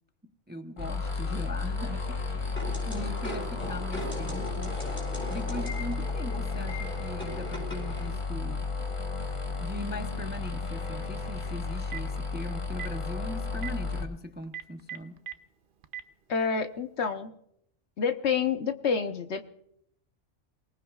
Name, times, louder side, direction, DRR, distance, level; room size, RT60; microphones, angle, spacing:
voice 1, 0.5-4.8 5.3-8.7 9.6-15.2, left 1 dB, 10° right, 0.6 m, -40 dB
sound 1, 0.8-14.0, left 4 dB, 25° left, 1.1 m, -33 dB
sound 2, 2.6-8.1, left 1 dB, 10° left, 7.6 m, -39 dB
Telephone, 11.7-12.1 12.7-12.9 13.5-13.7 14.4-15.3 15.8-16.0, right 11 dB, 50° right, 0.8 m, -37 dB
voice 2, 16.3-17.3 18.0-19.5, left 6 dB, 65° left, 1.2 m, -28 dB
28.5 x 19.0 x 2.4 m
omnidirectional pair, 1.3 m